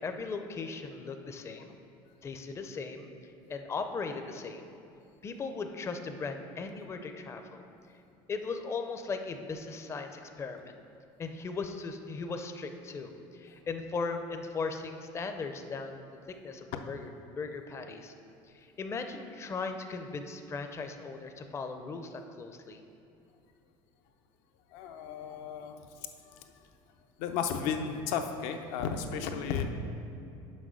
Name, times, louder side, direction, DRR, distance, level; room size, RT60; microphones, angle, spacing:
voice 1, 0.0-1.8 2.2-3.1 3.5-4.7 5.2-7.7 8.3-10.7 11.2-18.1 18.5-22.8, left 4 dB, 25° left, 6 dB, 0.5 m, -38 dB
voice 2, 24.7-26.4 27.2-29.6, left 7 dB, 75° left, 6 dB, 0.7 m, -34 dB
6.3 x 5.1 x 6.2 m, 2.7 s
supercardioid pair, 115°, 11 cm